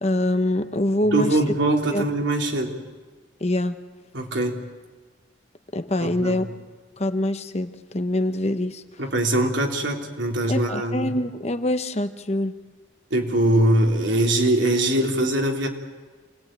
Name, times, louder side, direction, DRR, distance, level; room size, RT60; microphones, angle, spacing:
voice 1, 0.0-1.4 1.9-2.0 3.4-3.8 5.7-6.5 7.0-8.8 10.5-12.6, left 1 dB, 35° left, 9 dB, 1.0 m, -24 dB
voice 2, 1.1-2.8 4.1-4.6 6.0-6.4 9.0-11.1 13.1-15.7, right 1 dB, 85° right, 1 dB, 3.3 m, -22 dB
27.5 x 19.0 x 9.0 m, 1.4 s
head